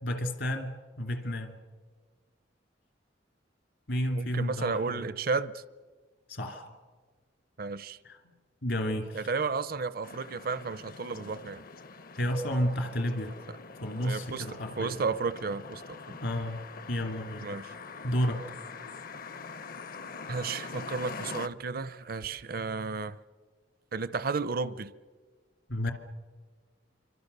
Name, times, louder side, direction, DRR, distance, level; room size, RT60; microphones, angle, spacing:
voice 1, 0.0-1.6 3.9-5.1 6.3-6.7 8.0-8.2 8.6-9.3 12.1-13.3 13.8-15.0 16.2-16.6 16.9-17.5 18.0-18.4 25.7-25.9, equal, 70° left, 2.5 m, -31 dB
voice 2, 4.1-5.6 7.6-8.0 9.1-11.6 13.5-13.6 14.0-16.0 17.4-17.7 20.3-23.2 23.9-24.9, right 4 dB, 55° right, 0.7 m, -33 dB
sound 1, 10.0-21.5, left 4 dB, 50° left, 0.8 m, -44 dB
27.5 x 25.0 x 6.8 m
head